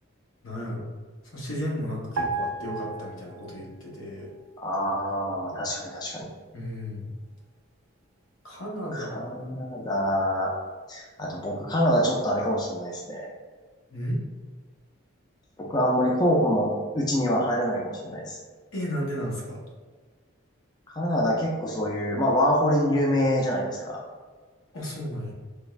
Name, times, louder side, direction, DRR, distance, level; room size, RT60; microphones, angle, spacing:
voice 1, 0.4-0.9 1.3-4.3 6.5-7.1 8.4-9.2 13.9-14.2 18.7-19.6 24.7-25.3, equal, 85° left, -3 dB, 0.9 m, -33 dB
sound 1, 2.2-3.8 4.1-4.3, right 2 dB, 75° right, 0.3 m, -33 dB
voice 2, 4.6-6.3 8.9-10.5 10.9-13.3 15.6-18.4 20.9-24.0, equal, 20° left, -2 dB, 0.4 m, -25 dB
3.4 x 2.3 x 3.1 m, 1.4 s
head